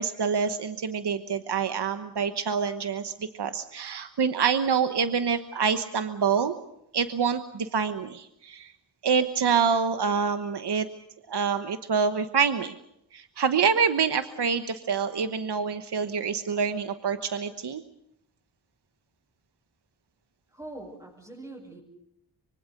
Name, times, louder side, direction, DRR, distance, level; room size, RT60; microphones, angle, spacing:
voice 1, 0.0-6.5 6.9-8.7 9.0-10.9 11.3-12.8 13.1-17.8, right 6 dB, 75° right, 9 dB, 1.2 m, -26 dB
voice 2, 20.5-21.8, right 2 dB, 10° right, -4 dB, 7.5 m, -42 dB
25.0 x 23.5 x 6.7 m, 0.79 s
cardioid pair, 50°, 41 cm